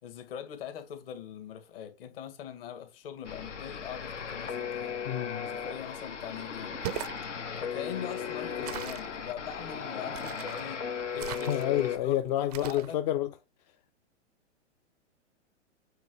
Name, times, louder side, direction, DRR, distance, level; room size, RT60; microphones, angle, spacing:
voice 1, 0.0-5.0 5.5-6.8 7.6-10.9 11.1-13.0, left 9 dB, 50° left, 2.2 m, -42 dB
sound 1, 3.2-12.0, left 7 dB, 80° left, 1.7 m, -37 dB
voice 2, 5.0-5.5 8.6-8.7 11.5-13.3, left 12 dB, 35° left, 0.6 m, -29 dB
sound 2, 6.7-7.2 8.6-9.1 10.1-10.7 11.2-11.9 12.5-12.9, right 13 dB, 35° right, 0.4 m, -39 dB
8.3 x 4.1 x 4.8 m
hypercardioid pair, 120°, 36 cm